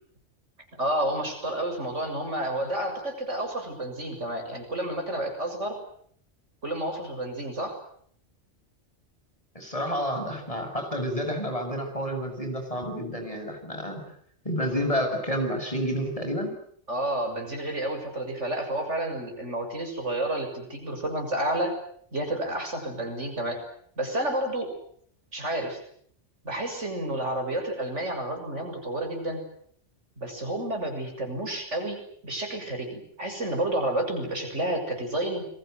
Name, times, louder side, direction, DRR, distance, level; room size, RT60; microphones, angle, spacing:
voice 1, 0.8-5.8 6.6-7.8 16.9-21.7 22.1-23.6 24.0-24.7 25.3-25.8 26.4-29.4 30.2-35.5, right 1 dB, 80° right, 4 dB, 7.2 m, -30 dB
voice 2, 9.6-14.0 14.5-16.5, equal, 30° left, 5 dB, 6.9 m, -29 dB
29.5 x 22.5 x 8.0 m, 0.64 s
omnidirectional pair, 1.2 m